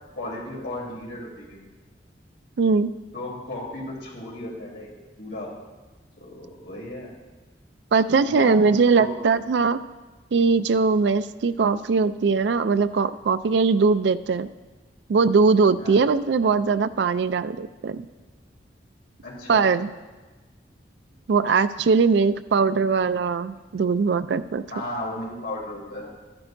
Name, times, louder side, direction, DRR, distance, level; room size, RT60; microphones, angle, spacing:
voice 1, 0.1-1.6 3.1-4.9 5.2-5.5 6.2-7.1 8.2-9.2 15.8-16.0 19.2-19.7 24.7-26.1, left 1 dB, 70° left, -4 dB, 3.2 m, -35 dB
voice 2, 2.6-2.9 7.9-9.8 10.3-14.5 15.1-18.1 19.5-19.9 21.3-24.6, right 4 dB, 75° right, 13 dB, 0.4 m, -20 dB
13.5 x 10.5 x 2.6 m, 1.3 s
head